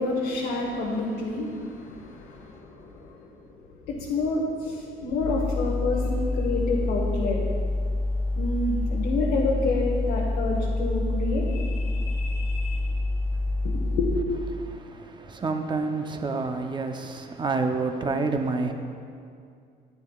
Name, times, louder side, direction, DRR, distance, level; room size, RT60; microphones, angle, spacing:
voice 1, 0.0-3.3 3.9-7.4 8.4-12.9 13.6-14.1, left 3 dB, 80° left, -4 dB, 1.1 m, -29 dB
sound 1, 5.2-14.2, left 2 dB, 25° left, 1.7 m, -27 dB
voice 2, 14.5-18.7, right 3 dB, 25° right, 6 dB, 0.7 m, -28 dB
10.5 x 9.4 x 2.4 m, 2.3 s
cardioid pair, 110°, 17 cm